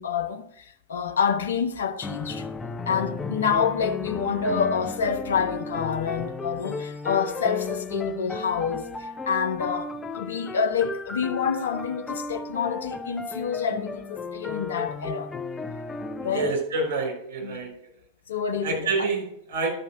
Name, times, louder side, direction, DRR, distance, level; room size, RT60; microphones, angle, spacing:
voice 1, 0.0-2.4 2.9-8.9 9.3-15.3 16.2-16.5 17.4-17.8 18.3-19.1, left 6 dB, 65° left, 1.0 m, -27 dB
sound 1, 2.0-16.6, left 3 dB, 15° left, 0.6 m, -35 dB
voice 2, 16.3-17.7 18.6-19.7, right 4 dB, 60° right, 5.2 m, -27 dB
12.0 x 5.6 x 6.4 m
figure-of-eight pair, 90°, 0 cm